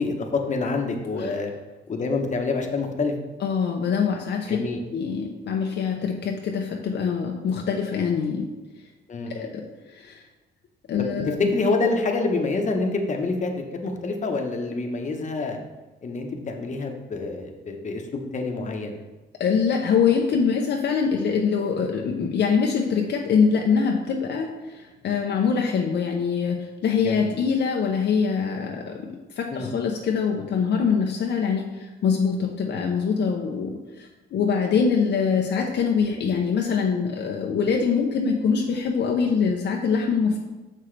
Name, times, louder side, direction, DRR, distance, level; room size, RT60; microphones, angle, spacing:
voice 1, 0.0-1.5 1.9-3.1 4.5-4.8 9.1-9.5 11.0-11.1 11.4-15.6 16.0-18.0 18.3-19.0 27.0-27.3 29.5-29.7, left 3 dB, 35° left, 3 dB, 1.1 m, -27 dB
voice 2, 3.4-4.6 4.9-8.5 9.3-9.6 9.9-10.2 10.9-11.5 19.4-29.1 29.3-40.4, left 6 dB, 60° left, 1 dB, 0.7 m, -24 dB
6.4 x 5.8 x 3.3 m, 1.2 s
cardioid pair, 90°, 20 cm